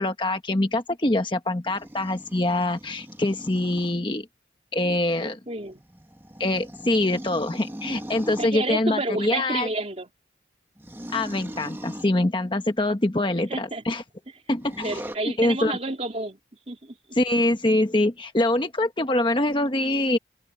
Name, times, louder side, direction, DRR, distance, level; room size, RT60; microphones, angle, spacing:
voice 1, 0.0-4.3 4.7-5.4 6.4-9.7 11.1-14.0 14.5-15.0 15.4-15.8 17.1-20.2, left 1 dB, 25° left, 1.1 m, -24 dB
sound 1, 1.7-4.0 5.6-8.6 10.8-12.2 14.6-15.2, equal, 10° right, 1.3 m, -39 dB
voice 2, 5.2-5.8 8.4-10.1 13.5-13.8 14.8-16.4 16.7-17.2, right 2 dB, 35° right, 3.5 m, -30 dB
open air
head